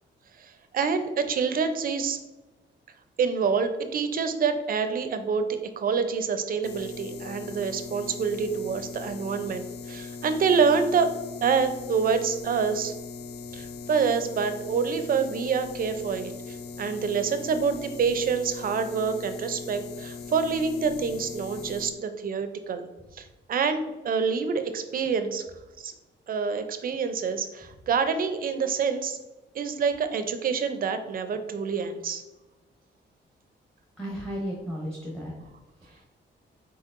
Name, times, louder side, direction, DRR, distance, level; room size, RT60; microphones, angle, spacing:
voice 1, 0.4-2.2 3.2-11.1 11.4-12.9 13.5-22.9 23.1-25.5 25.8-25.9 26.3-29.2 29.5-32.2, right 5 dB, 45° right, 9 dB, 0.4 m, -27 dB
sound 1, 6.6-21.9, left 4 dB, 55° left, 0.4 m, -40 dB
voice 2, 34.0-35.5 35.8-36.1, equal, 5° left, -3 dB, 0.8 m, -35 dB
4.5 x 4.2 x 2.5 m, 1.1 s
wide cardioid pair, 145°, 20 cm